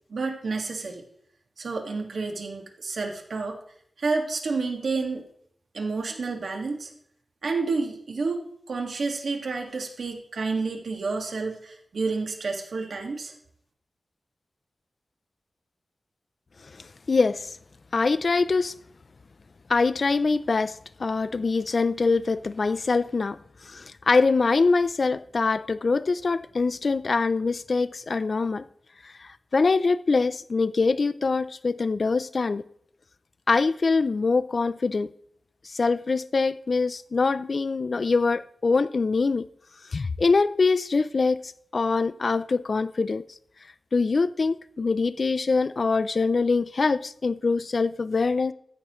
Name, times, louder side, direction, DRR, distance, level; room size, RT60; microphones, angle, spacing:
voice 1, 0.1-1.0 1.6-3.6 4.0-5.2 5.7-6.9 7.4-13.3, right 4 dB, 80° right, 1.9 m, -30 dB
voice 2, 16.7-17.6 17.9-18.7 19.7-23.4 23.6-28.6 29.0-32.6 33.5-35.1 35.6-39.5 39.9-43.2 43.9-48.5, left 4 dB, 55° left, 0.5 m, -24 dB
14.5 x 12.5 x 3.1 m
wide cardioid pair, 100°, 0 cm